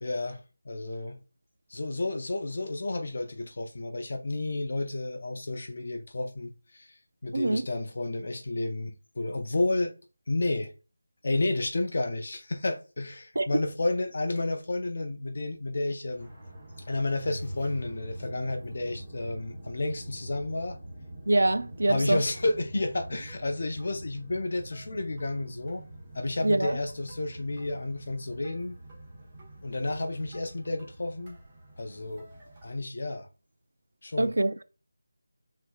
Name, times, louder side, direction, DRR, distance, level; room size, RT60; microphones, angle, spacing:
voice 1, 0.0-1.2 1.7-9.9 10.3-10.7 11.2-16.3 16.8-20.8 21.9-25.8 26.1-28.8 29.6-31.4 31.8-32.3 32.6-33.3 34.0-34.4, left 2 dB, 40° left, 0.5 m, -31 dB
sound 1, 16.2-32.8, right 1 dB, 15° right, 1.0 m, -45 dB
voice 2, 21.3-22.2 26.4-26.8 34.2-34.6, right 2 dB, 80° right, 0.5 m, -24 dB
6.3 x 3.6 x 2.3 m
figure-of-eight pair, 180°, 0 cm